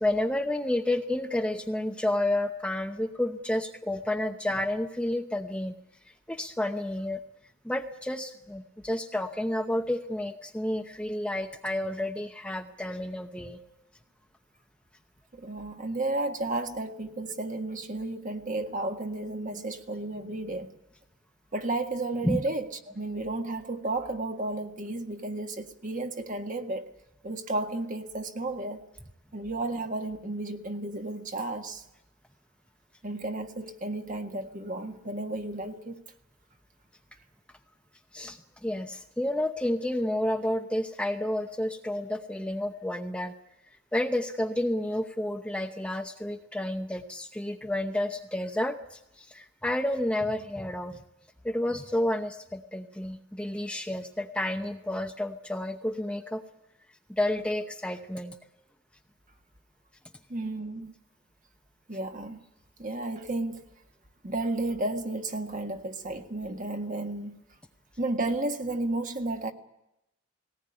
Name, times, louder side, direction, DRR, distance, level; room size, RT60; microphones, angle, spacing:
voice 1, 0.0-5.7 6.3-7.2 7.6-13.6 22.2-22.4 38.1-43.3 43.9-51.0 51.4-56.4 57.1-58.4, left 1 dB, 5° left, 5 dB, 0.8 m, -30 dB
voice 2, 15.3-20.7 21.5-26.9 27.2-28.8 29.3-31.8 33.0-36.0 60.3-60.9 61.9-62.4 62.8-63.7 64.2-67.4 68.0-69.5, right 2 dB, 40° right, 5 dB, 1.7 m, -33 dB
19.5 x 18.5 x 9.8 m, 0.85 s
head